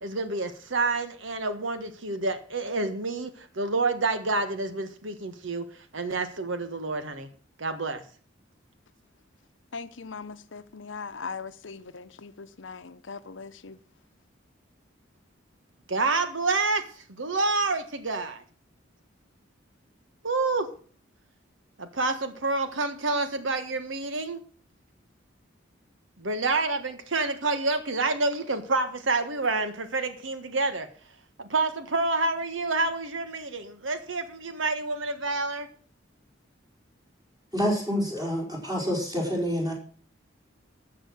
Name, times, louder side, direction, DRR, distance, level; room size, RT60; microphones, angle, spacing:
voice 1, 0.0-5.6 5.9-7.3 7.6-8.0 15.9-16.8 17.2-18.4 20.2-20.7 21.8-24.4 26.2-30.9 31.4-35.7, right 3 dB, 85° right, 1.4 m, -28 dB
voice 2, 9.7-13.8, left 5 dB, 80° left, 0.8 m, -40 dB
voice 3, 37.5-39.7, equal, 20° right, 4.8 m, -27 dB
13.5 x 7.6 x 6.3 m
head